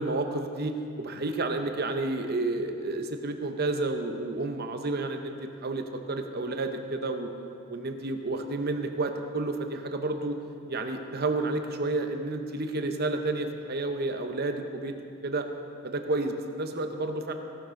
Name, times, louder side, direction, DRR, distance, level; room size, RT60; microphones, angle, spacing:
voice 1, 0.0-7.3 7.7-10.4 10.7-15.0 15.2-15.5 15.8-17.3, right 2 dB, 45° right, 6 dB, 0.9 m, -30 dB
16.5 x 11.5 x 3.8 m, 2.5 s
head